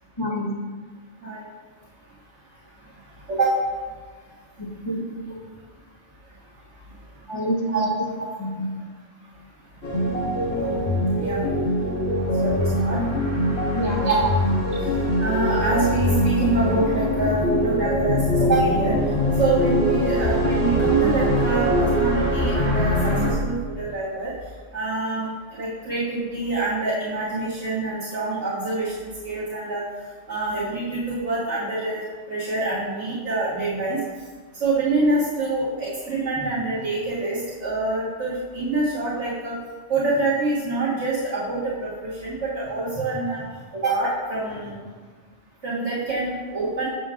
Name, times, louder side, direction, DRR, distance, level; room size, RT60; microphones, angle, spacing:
voice 1, 0.2-0.5 4.6-5.0 7.3-7.9 8.4-8.7 13.7-14.1, equal, 25° left, -3 dB, 0.9 m, -27 dB
sound 1, 9.8-23.3, equal, 60° left, 2.0 m, -22 dB
voice 2, 10.5-10.9 11.2-11.5 12.4-13.0 14.0-14.1 14.8-14.9 15.2-18.9 19.4-24.3 24.7-29.8 30.3-34.0 34.6-39.5 39.9-43.4 43.7-44.8 45.6-46.9, right 2 dB, 75° right, -10 dB, 1.7 m, -26 dB
7.1 x 6.8 x 2.4 m, 1.4 s
omnidirectional pair, 1.2 m